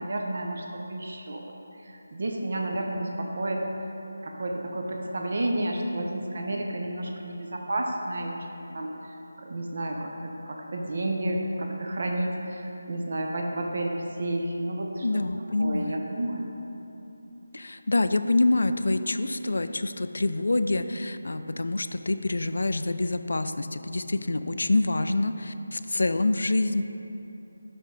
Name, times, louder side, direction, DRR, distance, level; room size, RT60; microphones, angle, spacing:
voice 1, 0.0-3.7 4.2-8.5 8.7-8.9 9.4-15.2 15.6-16.5, right 1 dB, 55° right, 1 dB, 0.7 m, -31 dB
voice 2, 15.0-16.0 17.5-26.8, left 2 dB, 65° left, 10 dB, 0.3 m, -26 dB
5.9 x 5.5 x 4.7 m, 2.9 s
figure-of-eight pair, 160°, 0 cm